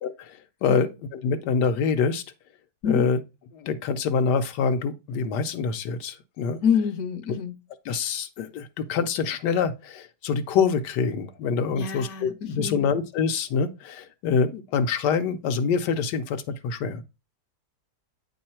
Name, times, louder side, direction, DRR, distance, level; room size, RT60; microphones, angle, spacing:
voice 1, 0.0-2.2 2.8-3.2 3.5-6.6 7.9-17.0, left 5 dB, 90° left, 1.3 m, -25 dB
voice 2, 6.6-7.5 11.7-12.9, left 7 dB, 70° left, 1.1 m, -27 dB
8.6 x 3.1 x 4.2 m
omnidirectional pair, 1.8 m